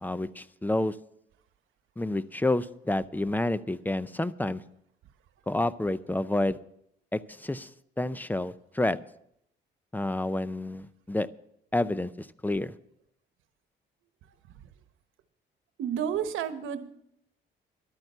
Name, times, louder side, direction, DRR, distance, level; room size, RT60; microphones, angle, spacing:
voice 1, 0.0-1.0 2.0-4.6 5.5-6.6 7.1-7.7 8.0-9.0 9.9-11.3 11.7-12.7, left 2 dB, 10° left, 16 dB, 0.5 m, -29 dB
voice 2, 15.8-16.9, right 8 dB, 90° right, 10 dB, 1.1 m, -30 dB
12.0 x 9.1 x 6.7 m, 0.74 s
cardioid pair, 90°, 20 cm